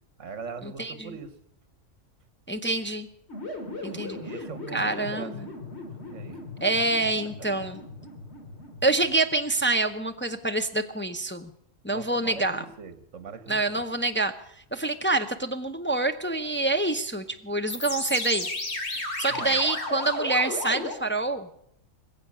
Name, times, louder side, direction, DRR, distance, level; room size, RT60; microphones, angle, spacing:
voice 1, 0.2-1.3 3.9-5.3 6.0-6.4 11.9-13.8 19.3-19.6, right 5 dB, 70° right, 12 dB, 1.5 m, -41 dB
voice 2, 0.8-1.2 2.5-3.1 3.8-4.2 4.7-5.5 6.6-7.8 8.8-11.5 11.8-12.6 13.5-14.3 14.7-18.5 18.9-21.5, right 2 dB, 15° left, 6 dB, 0.4 m, -26 dB
sound 1, 3.3-9.4 17.7-20.9, left 2 dB, 55° left, 2.7 m, -35 dB
20.5 x 7.8 x 8.5 m, 0.73 s
omnidirectional pair, 1.3 m